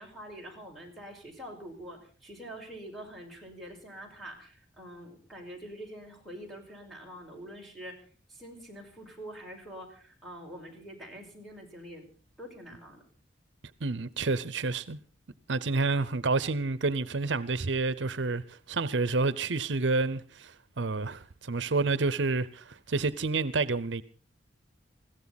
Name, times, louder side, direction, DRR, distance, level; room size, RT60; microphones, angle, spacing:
voice 1, 0.0-8.0 8.3-12.1 12.4-13.0, equal, ahead, 5.3 m, -45 dB
voice 2, 13.8-15.0 15.5-24.0, right 3 dB, 75° right, 0.8 m, -29 dB
21.5 x 16.0 x 4.1 m
head